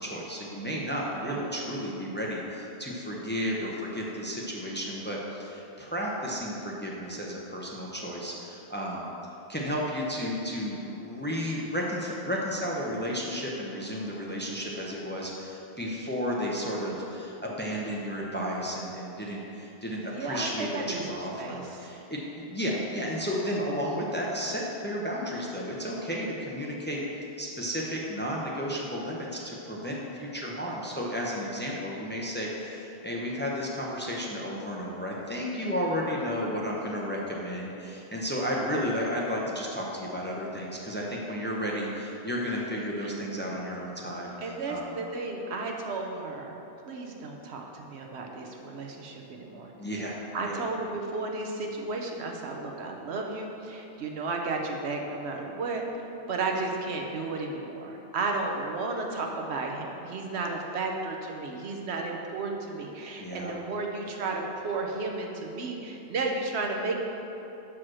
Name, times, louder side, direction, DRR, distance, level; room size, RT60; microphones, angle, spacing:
voice 1, 0.0-9.1 9.5-27.0 27.4-45.0 49.8-50.2 50.4-50.6 63.2-63.5, equal, 10° left, -3 dB, 0.7 m, -33 dB
voice 2, 1.2-1.6 19.9-21.1 21.4-21.9 42.8-43.1 44.4-46.6 46.9-49.7 50.3-55.8 56.3-67.0, right 3 dB, 85° right, 2 dB, 1.1 m, -33 dB
6.1 x 4.7 x 6.2 m, 3.0 s
omnidirectional pair, 1.1 m